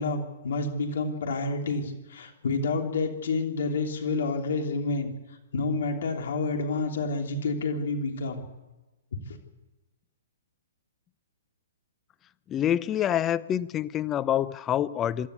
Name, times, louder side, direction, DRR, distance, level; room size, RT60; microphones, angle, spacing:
voice 1, 0.0-5.1 5.5-8.4, left 3 dB, 65° left, 3 dB, 3.2 m, -29 dB
voice 2, 12.5-15.3, left 10 dB, 20° left, 14 dB, 0.7 m, -26 dB
25.5 x 13.0 x 8.3 m, 1.1 s
hypercardioid pair, 125°, 0 cm